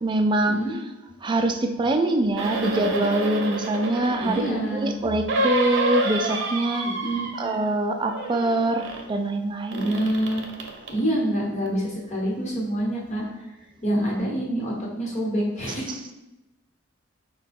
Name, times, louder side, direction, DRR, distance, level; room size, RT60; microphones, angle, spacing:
voice 1, 0.0-0.6 1.2-6.9 7.4-10.0, right 2 dB, 25° right, 5 dB, 0.3 m, -24 dB
sound 1, 2.3-4.6 5.3-7.8 8.0-9.1 9.7-11.0 11.7-11.8, right 1 dB, 60° right, 0.7 m, -29 dB
voice 2, 4.2-4.9 6.8-7.3 9.7-10.5 10.9-13.2 13.8-16.0, right 1 dB, 35° left, -3 dB, 1.1 m, -26 dB
4.9 x 2.2 x 4.2 m, 0.98 s
head